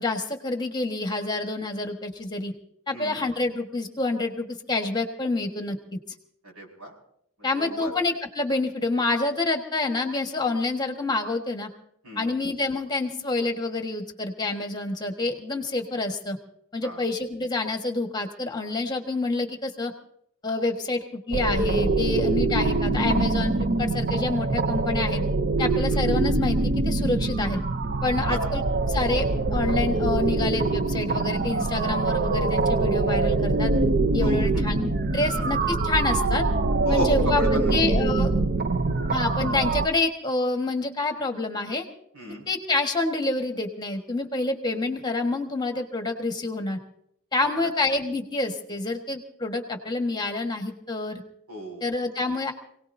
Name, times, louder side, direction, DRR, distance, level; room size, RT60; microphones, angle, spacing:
voice 1, 0.0-2.5 2.9-6.0 7.4-11.7 12.2-16.4 16.7-19.9 20.4-25.2 25.6-27.6 28.0-28.6 28.9-33.7 34.1-36.4 36.9-38.3 39.1-41.9 42.5-46.8 47.3-51.2 51.8-52.5, left 2 dB, 20° left, 4 dB, 1.4 m, -27 dB
voice 2, 6.4-6.9 7.4-7.9 12.0-12.3 16.8-17.0 25.6-26.0 28.2-28.5 34.2-34.6 36.8-37.8 42.1-42.4 47.4-47.7 51.5-51.9, right 1 dB, 85° right, 0 dB, 5.4 m, -34 dB
sound 1, 21.3-39.9, right 2 dB, 45° right, 0.6 m, -24 dB
27.5 x 18.0 x 2.7 m, 0.70 s
head